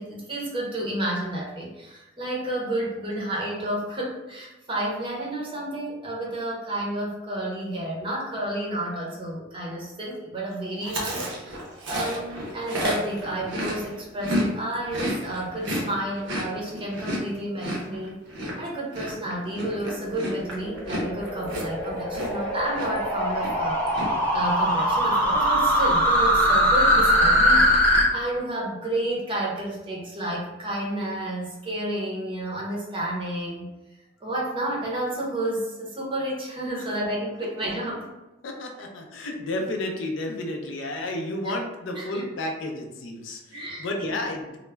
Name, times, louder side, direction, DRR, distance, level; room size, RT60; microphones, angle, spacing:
voice 1, 0.0-11.6 11.9-18.2 18.6-33.7 34.2-38.1 41.9-42.3 43.5-44.2, right 1 dB, 25° right, -3 dB, 0.6 m, -31 dB
Chewing mastication, 10.8-14.5 14.7-22.5 22.7-23.1 23.4-24.1, equal, 70° right, 0.6 m, -31 dB
sound 1, 20.0-28.0, equal, 10° left, 0.7 m, -22 dB
voice 2, 38.4-44.6, left 1 dB, 80° left, 2 dB, 0.4 m, -32 dB
2.3 x 2.0 x 3.2 m, 1.0 s
head